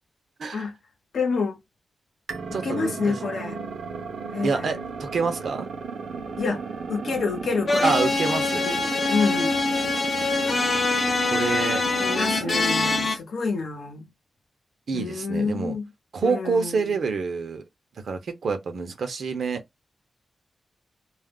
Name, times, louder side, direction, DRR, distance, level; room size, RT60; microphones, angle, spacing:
voice 1, 1.1-1.6 2.5-3.6 4.3-4.7 6.4-6.6 6.9-7.9 8.6-9.6 12.0-14.1 14.9-15.8 16.2-17.0, left 4 dB, 70° left, 0.8 m, -28 dB
sound 1, 2.3-13.2, right 5 dB, 90° right, 0.8 m, -34 dB
voice 2, 2.5-3.2 4.4-5.7 7.8-8.7 11.3-11.8 14.9-15.8 16.1-17.6 18.0-19.6, right 5 dB, 65° right, 0.7 m, -27 dB
sound 2, 7.7-13.2, left 3 dB, 40° left, 0.6 m, -24 dB
2.4 x 2.0 x 3.5 m
wide cardioid pair, 175°, 0 cm